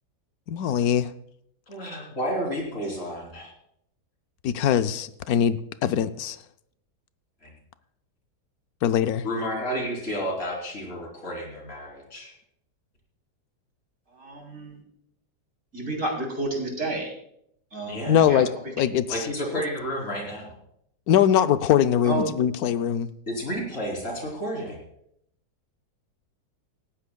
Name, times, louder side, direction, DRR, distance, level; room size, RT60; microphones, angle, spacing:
voice 1, 0.5-1.1 4.4-6.4 8.8-9.2 18.1-18.5 18.8-19.2 21.1-23.1, left 9 dB, 70° left, 11 dB, 1.1 m, -22 dB
voice 2, 1.7-3.5 7.4-7.5 9.2-12.3 17.9-18.3 19.1-20.5 23.3-24.8, equal, 45° left, -1 dB, 3.9 m, -31 dB
voice 3, 14.1-14.8 15.7-17.1 17.7-18.5 22.0-22.3, right 2 dB, 45° right, 0 dB, 3.6 m, -30 dB
19.0 x 14.5 x 2.3 m, 0.73 s
omnidirectional pair, 1.8 m